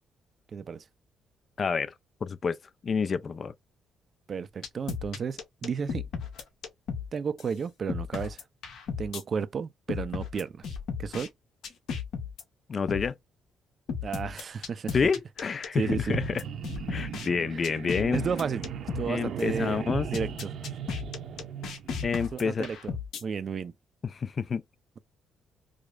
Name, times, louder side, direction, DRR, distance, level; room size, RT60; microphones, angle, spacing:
voice 1, 0.5-0.8 4.3-6.1 7.1-8.4 9.0-10.7 11.0-11.3 14.0-15.0 15.7-16.2 18.1-18.7 18.9-19.8 20.1-20.5 22.3-23.0 23.2-23.7, right 6 dB, 50° right, 0.4 m, -32 dB
voice 2, 1.6-1.9 2.2-2.6 2.8-3.5 12.7-13.2 14.9-16.4 16.9-18.2 19.1-20.1 22.0-22.7 24.0-24.6, left 5 dB, 45° left, 0.4 m, -28 dB
sound 1, 4.6-7.1 7.4-7.5 7.9-9.2 9.9-11.3 11.6-12.4 12.9-13.1 13.9-17.3 17.6-19.1 19.4-19.5 19.9-23.2, left 6 dB, 75° left, 1.1 m, -34 dB
sound 2, 16.0-22.2, right 8 dB, 70° right, 0.8 m, -37 dB
4.8 x 2.0 x 2.4 m
cardioid pair, 90°, 0 cm